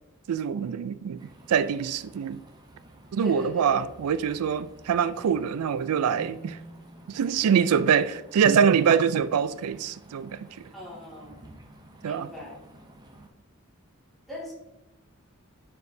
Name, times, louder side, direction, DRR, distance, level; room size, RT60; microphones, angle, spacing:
voice 1, 0.3-1.2 1.5-2.4 3.1-6.6 7.1-10.7 12.0-12.3, right 7 dB, 85° right, 0.4 m, -24 dB
sound 1, 1.2-13.3, right 2 dB, 20° right, 0.6 m, -51 dB
voice 2, 3.2-3.8 10.7-11.4 12.0-12.6 14.3-14.5, left 1 dB, ahead, 2.1 m, -38 dB
9.4 x 4.5 x 2.7 m
head